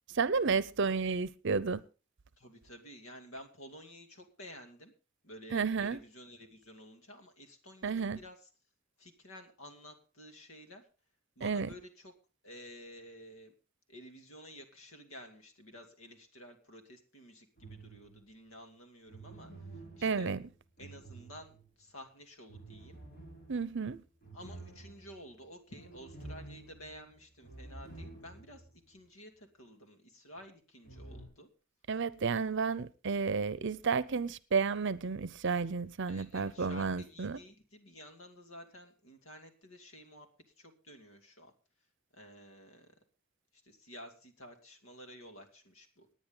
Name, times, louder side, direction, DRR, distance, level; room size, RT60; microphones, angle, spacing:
voice 1, 0.1-1.8 5.5-6.0 7.8-8.2 11.4-11.7 20.0-20.4 23.5-24.0 31.9-37.4, right 5 dB, 60° right, 0.6 m, -32 dB
voice 2, 2.4-4.9 5.2-8.5 9.0-10.9 11.4-12.1 12.4-13.5 13.9-20.3 20.8-23.0 24.3-31.5 36.1-40.3 40.6-41.5 42.1-42.9 43.5-46.1, equal, 90° left, 2.5 m, -52 dB
sound 1, 17.6-18.3 19.1-21.8 22.5-28.7 29.0-29.1 30.8-31.2, right 2 dB, 50° left, 6.5 m, -50 dB
19.0 x 9.5 x 3.8 m
head